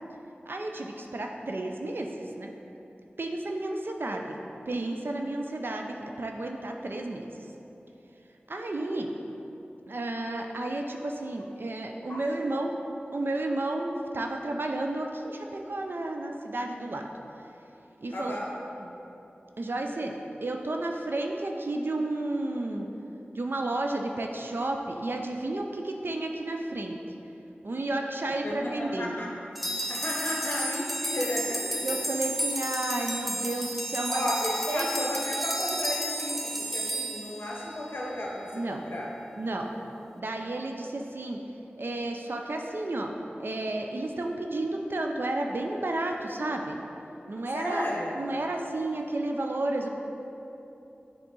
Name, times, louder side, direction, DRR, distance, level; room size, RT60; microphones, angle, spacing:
voice 1, 0.5-2.1 2.4-2.5 3.2-4.4 4.7-7.3 8.5-9.1 9.9-12.7 13.1-17.0 18.0-18.4 18.8-18.9 19.6-20.1 20.4-22.9 23.3-27.0 27.6-29.1 31.2-31.3 31.8-34.3 34.7-34.9 38.5-38.8 39.4-39.7 40.1-41.4 41.8-43.1 43.4-46.8 47.3-47.8 48.2-49.9, right 2 dB, 65° right, 2 dB, 0.4 m, -32 dB
voice 2, 18.1-18.5 28.4-29.3 29.9-31.8 34.1-36.4 36.7-39.1 47.5-48.1, left 1 dB, 70° left, -4 dB, 0.8 m, -33 dB
sound 1, 29.5-38.1, right 1 dB, ahead, 0.5 m, -32 dB
7.7 x 3.7 x 3.8 m, 3.0 s
wide cardioid pair, 45°, 4 cm